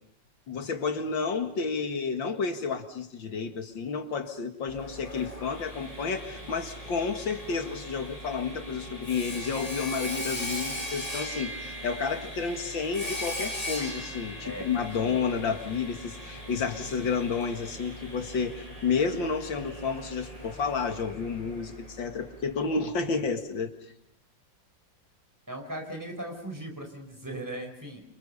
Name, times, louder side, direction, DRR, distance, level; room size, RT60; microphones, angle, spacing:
voice 1, 0.5-23.7, left 5 dB, 85° left, 7 dB, 2.7 m, -31 dB
Sawing, 4.7-22.5, equal, 20° left, 6.6 m, -39 dB
voice 2, 16.6-17.1 25.5-28.0, right 1 dB, 10° right, 3 dB, 4.7 m, -39 dB
28.0 x 26.5 x 5.6 m, 0.68 s
omnidirectional pair, 2.0 m